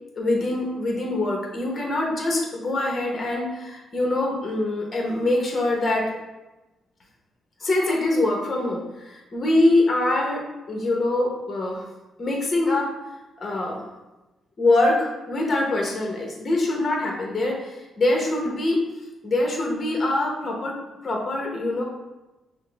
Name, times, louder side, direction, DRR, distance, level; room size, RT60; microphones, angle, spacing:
voice 1, 0.1-6.1 7.6-11.8 12.2-12.9 13.4-13.8 14.6-18.8 19.2-20.8 21.0-21.8, left 2 dB, 35° left, -1 dB, 1.0 m, -24 dB
5.7 x 2.1 x 3.4 m, 1.0 s
cardioid pair, 95°, 0 cm